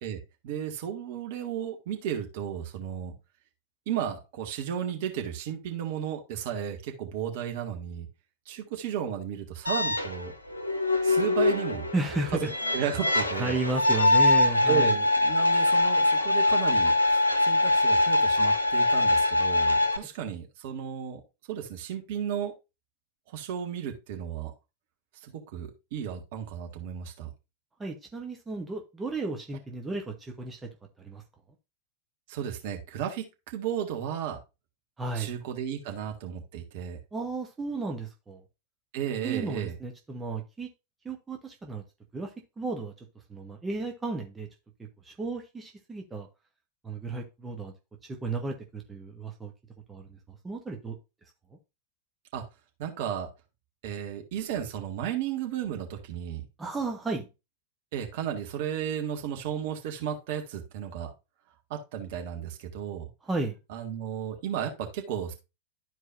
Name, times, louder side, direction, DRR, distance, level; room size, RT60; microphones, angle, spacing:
voice 1, 0.0-3.1 3.8-8.1 8.4-10.3 11.0-11.9 12.3-12.4 12.7-13.6 14.6-21.2 21.5-22.5 23.3-24.5 25.2-27.3 32.3-34.4 35.1-37.0 38.9-39.8 52.3-52.4 52.8-53.3 53.8-56.4 57.9-61.1 61.7-63.1 63.7-65.3, right 9 dB, 50° right, 4 dB, 1.7 m, -34 dB
sound 1, 9.7-20.0, left 2 dB, 80° left, 0.8 m, -23 dB
voice 2, 11.9-12.8 13.4-14.9 27.8-30.7 31.0-31.2 35.0-35.3 37.1-38.4 39.2-40.7 41.0-41.8 42.1-44.5 44.8-46.3 46.8-47.7 48.0-49.5 49.9-51.0 56.6-57.3 63.2-63.6, right 3 dB, 15° right, 3 dB, 1.1 m, -34 dB
12.0 x 4.6 x 2.6 m, 0.26 s
figure-of-eight pair, 90°, 0 cm